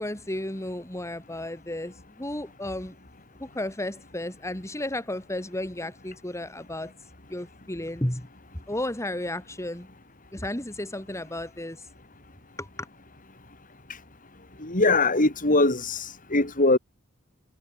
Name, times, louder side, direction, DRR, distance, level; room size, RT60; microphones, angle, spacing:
voice 1, 0.0-2.9 3.4-6.9 7.3-8.3 8.7-9.9 10.3-11.9 12.6-12.9, left 1 dB, 15° left, 2.3 m, -33 dB
voice 2, 14.6-16.8, left 2 dB, 40° left, 4.3 m, -22 dB
head